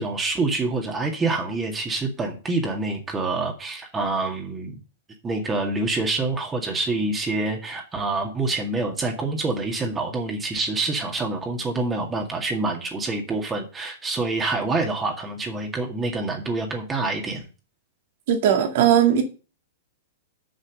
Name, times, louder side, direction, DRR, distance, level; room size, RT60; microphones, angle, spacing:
voice 1, 0.0-4.8 5.2-17.5, right 3 dB, 15° right, 2.0 m, -26 dB
voice 2, 18.3-19.2, right 9 dB, 55° right, 2.1 m, -18 dB
6.7 x 6.5 x 6.4 m
figure-of-eight pair, 105°, 0 cm